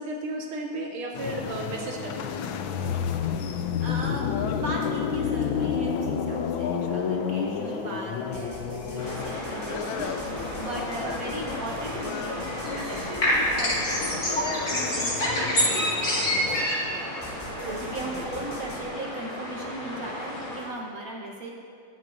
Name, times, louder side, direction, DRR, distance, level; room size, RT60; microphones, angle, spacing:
voice 1, 0.0-2.2 11.0-11.4 17.6-17.8 18.0-18.2, right 2 dB, 80° right, 0 dB, 2.2 m, -34 dB
sound 1, 1.1-16.7, left 7 dB, 75° left, 1.3 m, -31 dB
voice 2, 3.8-10.1 10.3-16.3 17.3-21.5, right 1 dB, 50° right, -1 dB, 1.3 m, -37 dB
sound 2, 8.3-15.4 15.7-15.9 16.5-18.8, equal, 15° left, 1.3 m, -44 dB
sound 3, 9.0-20.7, left 1 dB, 35° left, 2.2 m, -29 dB
20.0 x 8.1 x 2.6 m, 2.4 s
omnidirectional pair, 2.4 m